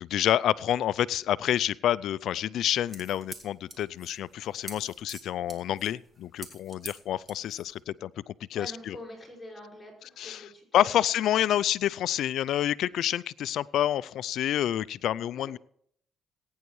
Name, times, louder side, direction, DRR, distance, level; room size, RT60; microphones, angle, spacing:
voice 1, 0.0-9.0 10.2-15.6, left 11 dB, 75° left, 19 dB, 0.3 m, -28 dB
sound 1, 2.6-7.8, right 2 dB, 30° right, 2.3 m, -46 dB
voice 2, 8.5-10.9 15.4-15.5, left 1 dB, 10° left, -4 dB, 5.4 m, -45 dB
20.5 x 9.4 x 3.2 m, 0.65 s
cardioid pair, 90°, 0 cm